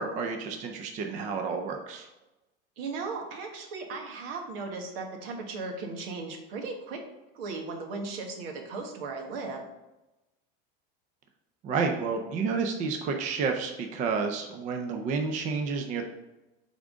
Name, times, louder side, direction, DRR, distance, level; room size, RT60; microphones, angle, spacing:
voice 1, 0.0-2.1 11.6-16.0, right 5 dB, 25° right, 4 dB, 0.5 m, -30 dB
voice 2, 2.8-7.0 7.3-9.7, right 4 dB, 80° right, 3 dB, 1.4 m, -36 dB
8.6 x 3.7 x 3.7 m, 1.0 s
supercardioid pair, 160°, 29 cm